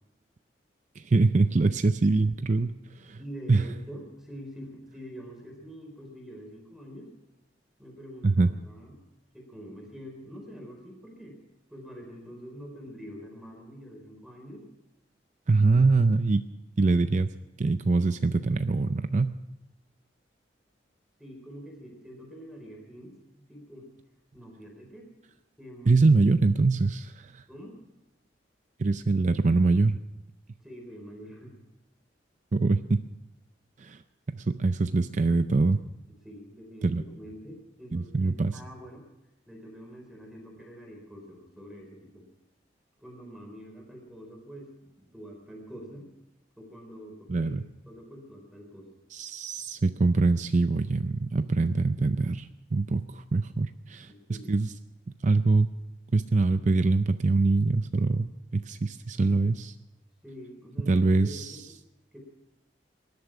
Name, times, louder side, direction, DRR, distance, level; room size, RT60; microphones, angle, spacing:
voice 1, 1.0-2.7 3.0-3.2 3.5-3.6 8.2-8.5 15.5-16.5 16.8-17.3 17.6-19.4 25.9-27.4 28.8-30.0 32.5-33.0 33.8-34.0 34.3-35.8 36.8-37.0 37.9-38.6 47.3-47.6 49.1-54.7 55.2-55.7 56.1-59.7 60.9-61.6, right 3 dB, 40° right, 10 dB, 0.5 m, -24 dB
voice 2, 3.2-7.1 7.8-9.0 9.3-11.4 11.7-14.7 21.2-23.9 24.3-25.1 25.6-26.0 27.5-27.8 30.6-31.6 36.2-39.1 39.5-42.2 43.0-46.1 46.6-47.6 47.9-48.9 54.0-54.5 60.2-61.6 62.1-62.2, equal, ahead, 0 dB, 4.2 m, -45 dB
19.0 x 11.5 x 6.0 m, 0.92 s
head